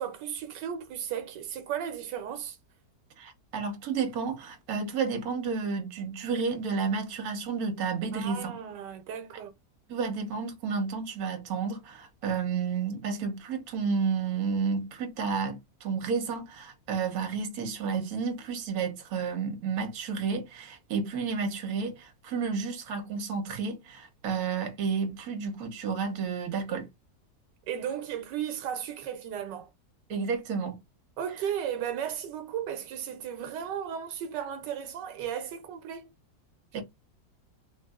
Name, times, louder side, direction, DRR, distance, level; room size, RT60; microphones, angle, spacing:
voice 1, 0.0-2.6 8.1-9.5 27.7-29.7 31.2-36.1 36.7-36.8, right 9 dB, 85° right, 1.3 m, -35 dB
voice 2, 3.2-8.6 9.9-26.9 30.1-30.8 36.7-36.8, right 5 dB, 65° right, 1.3 m, -31 dB
3.3 x 2.6 x 2.3 m
omnidirectional pair, 1.8 m